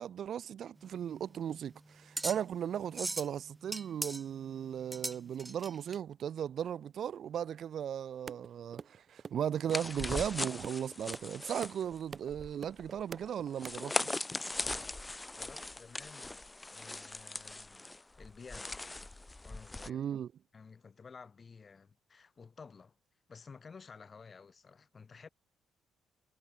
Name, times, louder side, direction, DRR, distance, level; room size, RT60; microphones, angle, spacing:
voice 1, 0.0-14.2 19.9-20.3, right 9 dB, 65° right, 1.8 m, -37 dB
sound 1, 0.8-6.0, right 2 dB, 15° right, 4.6 m, -41 dB
sound 2, 8.3-13.7, right 6 dB, 45° right, 6.2 m, -45 dB
sound 3, 9.7-19.9, left 2 dB, 15° left, 1.8 m, -39 dB
voice 2, 15.4-16.4 16.7-17.9 18.2-18.8 19.4-20.1 20.5-22.9 23.3-25.3, left 5 dB, 40° left, 6.4 m, -53 dB
cardioid pair, 90°, 0 cm